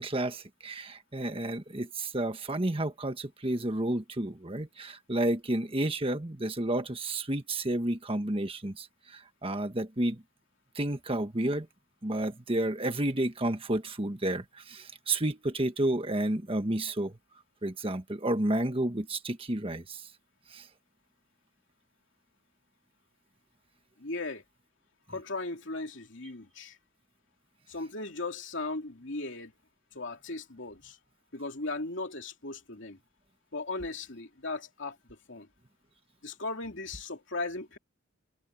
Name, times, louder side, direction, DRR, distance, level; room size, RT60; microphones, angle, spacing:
voice 1, 0.0-10.2 10.7-11.7 12.0-17.2 17.6-20.0 20.5-20.6, right 1 dB, 25° right, 1.4 m, -31 dB
voice 2, 24.0-24.4 25.1-26.8 27.7-29.5 29.9-31.0 31.3-33.0 33.5-35.5 36.2-37.8, left 3 dB, 60° left, 3.0 m, -37 dB
head